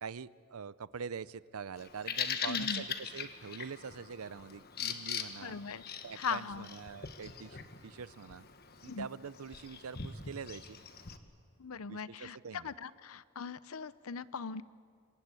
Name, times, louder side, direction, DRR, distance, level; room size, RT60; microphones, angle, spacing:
voice 1, 0.0-5.6 6.0-8.5 8.8-10.8 11.9-12.7, right 6 dB, 90° right, 18 dB, 0.6 m, -44 dB
Bird vocalization bird call bird song, 1.8-11.2, left 7 dB, 45° left, 1.4 m, -41 dB
voice 2, 2.5-2.8 5.4-5.8 6.2-6.7 8.9-9.1 11.6-14.6, left 5 dB, 85° left, 17 dB, 0.7 m, -39 dB
27.0 x 24.0 x 8.3 m, 2.2 s
head